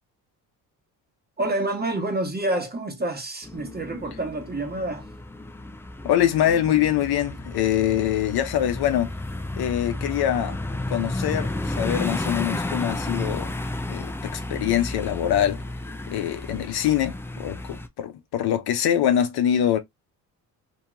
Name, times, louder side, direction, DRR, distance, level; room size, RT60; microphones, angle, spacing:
voice 1, 1.4-5.1, right 2 dB, 25° right, 1.3 m, -28 dB
sound 1, 3.4-17.9, left 2 dB, 5° left, 0.3 m, -32 dB
voice 2, 6.0-9.1 9.6-10.6 10.9-13.5 13.9-15.6 16.1-19.8, left 11 dB, 65° left, 0.7 m, -24 dB
2.8 x 2.8 x 2.3 m
supercardioid pair, 75°, 41 cm